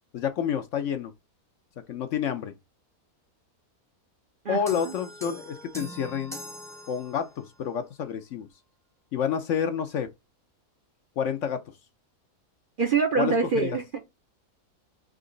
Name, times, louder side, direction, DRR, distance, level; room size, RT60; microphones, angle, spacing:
voice 1, 0.1-1.1 1.9-2.5 4.5-6.4 6.9-8.5 9.1-10.1 11.2-11.7 13.2-13.3 13.6-13.7, left 8 dB, 65° left, 0.8 m, -29 dB
voice 2, 4.4-4.9 12.8-14.0, right 4 dB, 50° right, 0.7 m, -25 dB
sound 1, 4.7-7.5, equal, 5° left, 0.7 m, -42 dB
3.8 x 2.9 x 3.7 m
omnidirectional pair, 1.6 m